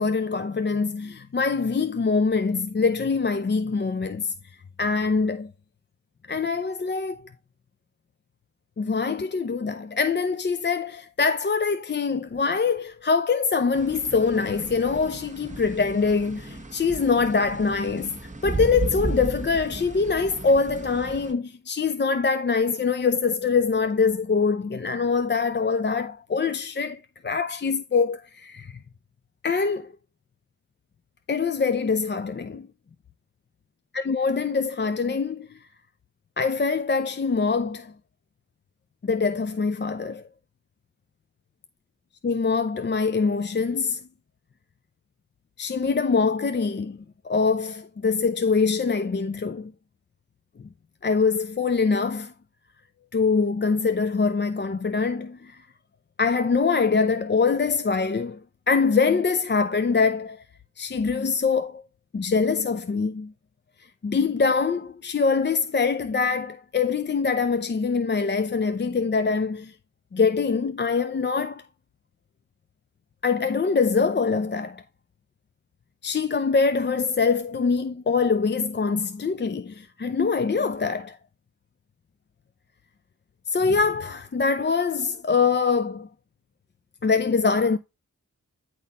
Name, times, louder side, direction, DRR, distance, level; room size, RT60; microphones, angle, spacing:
voice 1, 0.0-4.3 4.8-5.5 6.3-7.3 8.8-28.8 29.4-29.9 31.3-32.7 33.9-35.5 36.4-37.9 39.0-40.2 42.2-44.0 45.6-47.0 47.2-49.7 51.0-52.3 53.1-55.6 56.2-58.4 58.7-60.4 60.8-61.8 62.1-63.3 64.0-69.7 70.1-71.6 73.2-74.8 76.0-81.2 83.5-86.1 87.0-87.8, left 5 dB, 35° left, 0.5 m, -24 dB
sound 1, 13.7-21.3, right 3 dB, 25° right, 1.3 m, -34 dB
9.5 x 4.1 x 4.1 m
wide cardioid pair, 80°, 31 cm